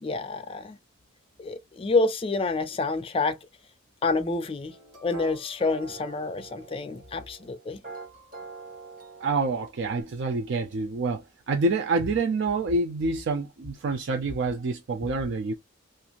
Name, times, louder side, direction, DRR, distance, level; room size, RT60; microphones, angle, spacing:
voice 1, 0.0-0.8 1.4-3.4 4.0-4.7 5.0-7.8 15.0-15.1, left 3 dB, 25° left, 0.3 m, -28 dB
sound 1, 4.7-10.0, right 3 dB, 40° right, 1.2 m, -44 dB
voice 2, 9.2-15.5, right 3 dB, 60° right, 0.4 m, -27 dB
2.5 x 2.4 x 2.8 m
head